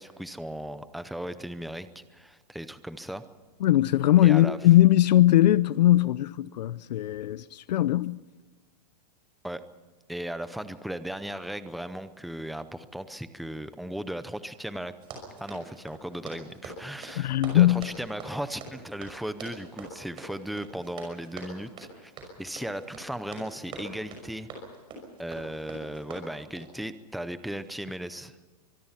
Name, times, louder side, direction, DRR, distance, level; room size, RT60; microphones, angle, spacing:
voice 1, 0.0-3.2 4.2-4.6 9.4-9.6 10.1-14.9 15.4-22.1 22.4-24.5 25.2-28.4, right 1 dB, ahead, 0.6 m, -36 dB
voice 2, 3.6-8.2 17.2-17.9, left 14 dB, 75° left, 0.7 m, -20 dB
Run, 14.9-26.8, right 3 dB, 25° right, 5.8 m, -44 dB
24.0 x 22.5 x 5.8 m
supercardioid pair, 170°, 21 cm